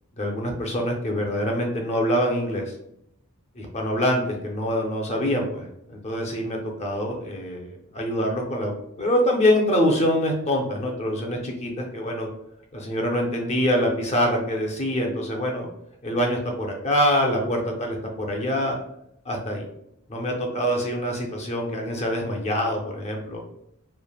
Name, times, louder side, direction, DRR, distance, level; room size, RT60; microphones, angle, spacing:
voice 1, 0.2-2.7 3.6-12.3 12.7-15.7 16.0-18.8 19.3-19.7 20.1-23.4, equal, 30° left, 1 dB, 0.5 m, -25 dB
3.1 x 2.1 x 2.3 m, 0.76 s
head